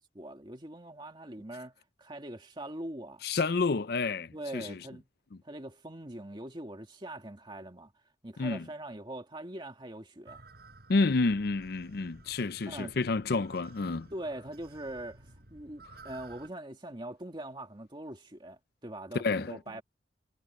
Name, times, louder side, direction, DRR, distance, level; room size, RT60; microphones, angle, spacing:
voice 1, 0.1-1.7 2.0-3.2 4.3-5.1 5.4-7.9 8.2-10.4 12.7-12.9 14.1-15.2 15.5-19.8, right 1 dB, 25° right, 2.1 m, -42 dB
voice 2, 3.2-4.8 8.4-8.7 10.9-14.1 19.1-19.6, left 3 dB, 60° left, 0.6 m, -29 dB
sound 1, 10.3-16.5, right 2 dB, 60° right, 6.6 m, -54 dB
head